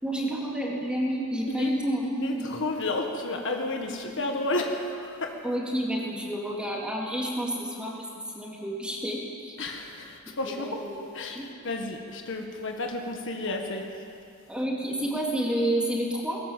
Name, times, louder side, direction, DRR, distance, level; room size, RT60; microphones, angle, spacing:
voice 1, 0.0-2.6 3.9-4.2 5.4-7.9 8.3-9.5 10.8-11.0 11.3-11.4 14.5-16.4, right 1 dB, 5° right, -3 dB, 3.4 m, -29 dB
voice 2, 2.2-5.4 9.6-10.8 11.1-13.9, left 2 dB, 60° left, 3 dB, 1.7 m, -32 dB
20.5 x 18.5 x 7.6 m, 2.5 s
head